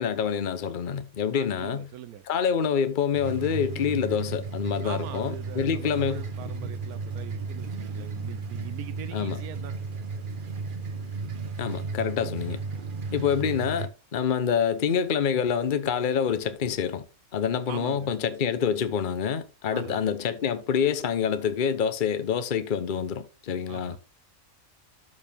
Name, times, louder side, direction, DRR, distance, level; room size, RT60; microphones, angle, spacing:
voice 1, 0.0-1.9 2.3-6.7 9.1-9.4 11.6-12.6 13.1-17.0 17.3-24.0, left 7 dB, 40° left, 0.9 m, -27 dB
voice 2, 1.3-2.2 4.8-9.8 17.7-18.1 19.7-20.0 23.7-24.0, right 10 dB, 85° right, 1.3 m, -41 dB
sound 1, 3.1-13.9, right 4 dB, 40° right, 0.9 m, -34 dB
12.5 x 4.6 x 3.5 m
omnidirectional pair, 1.5 m